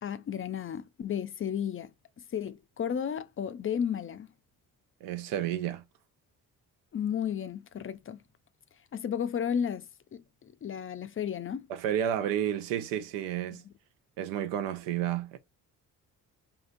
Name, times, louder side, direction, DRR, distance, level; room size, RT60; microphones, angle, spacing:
voice 1, 0.0-1.9 2.3-4.3 6.9-8.2 8.9-11.7 13.5-13.6, left 8 dB, 35° left, 0.4 m, -33 dB
voice 2, 5.0-5.8 11.7-13.6 14.2-15.4, right 10 dB, 85° right, 0.6 m, -31 dB
3.6 x 2.7 x 2.5 m
supercardioid pair, 60°, 42 cm